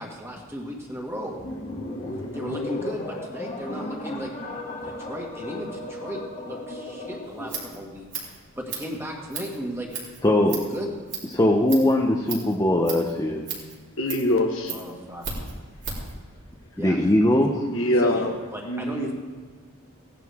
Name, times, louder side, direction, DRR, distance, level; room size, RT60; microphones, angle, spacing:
voice 1, 0.0-1.4 2.3-4.3 4.8-8.2 8.6-9.9 10.4-11.0 14.7-15.3 16.8-17.0 18.0-18.3 18.5-19.1, equal, 10° right, -1 dB, 1.9 m, -35 dB
sound 1, 1.3-7.8, left 1 dB, 35° left, 1.9 m, -35 dB
voice 2, 2.0-2.7 14.0-14.7 17.6-18.3 18.6-19.1, left 1 dB, 70° left, 3 dB, 1.4 m, -25 dB
Scissors, 7.2-16.2, right 5 dB, 60° right, 3.5 m, -37 dB
voice 3, 10.2-10.6 11.3-13.4 16.8-17.9, left 1 dB, 20° left, 0 dB, 0.9 m, -21 dB
17.0 x 11.0 x 3.6 m, 1.5 s
head